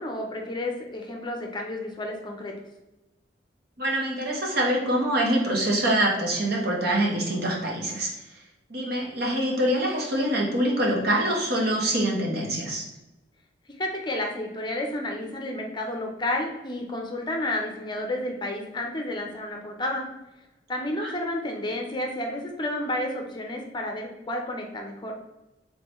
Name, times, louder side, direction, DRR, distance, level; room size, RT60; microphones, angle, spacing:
voice 1, 0.0-2.5 13.8-20.1 20.7-25.1, left 1 dB, 25° left, 2 dB, 0.6 m, -31 dB
voice 2, 3.8-8.1 8.7-12.8 21.0-21.1, right 1 dB, 60° right, -1 dB, 1.2 m, -25 dB
3.9 x 3.9 x 3.0 m, 0.99 s
head